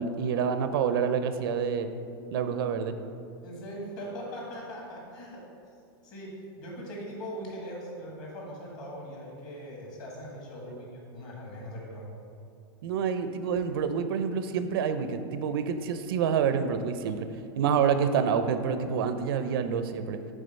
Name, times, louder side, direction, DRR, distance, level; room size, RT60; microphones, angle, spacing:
voice 1, 0.0-1.9 2.3-3.0 10.7-10.8 12.8-17.3 17.6-20.3, right 7 dB, 70° right, 9 dB, 0.4 m, -27 dB
voice 2, 3.4-5.4 6.0-12.1 13.8-13.9, equal, 35° left, -3 dB, 1.7 m, -40 dB
6.8 x 3.6 x 5.3 m, 2.4 s
supercardioid pair, 160°, 13 cm